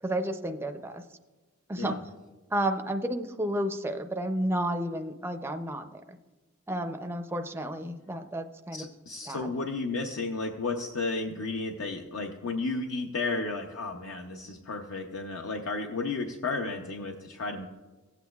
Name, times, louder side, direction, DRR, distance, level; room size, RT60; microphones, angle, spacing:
voice 1, 0.0-1.0 1.7-2.0 2.5-6.0 6.7-8.9 9.3-9.5, right 1 dB, 10° right, 6 dB, 0.4 m, -31 dB
voice 2, 8.7-17.7, left 3 dB, 70° left, 3 dB, 0.6 m, -33 dB
16.0 x 8.2 x 2.3 m, 1.2 s
head